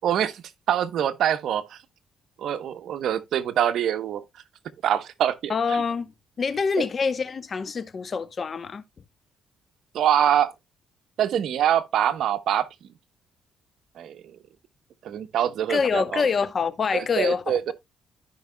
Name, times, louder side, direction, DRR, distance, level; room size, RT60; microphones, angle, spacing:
voice 1, 0.0-1.8 2.4-4.2 4.8-5.8 6.8-6.9 9.9-10.5 11.2-12.7 14.0-14.4 15.0-16.2 16.9-17.7, right 10 dB, 75° right, 0.9 m, -25 dB
voice 2, 5.5-6.1 6.4-8.8 15.7-17.7, left 5 dB, 45° left, 0.9 m, -25 dB
14.5 x 5.3 x 2.2 m
cardioid pair, 90°, 0 cm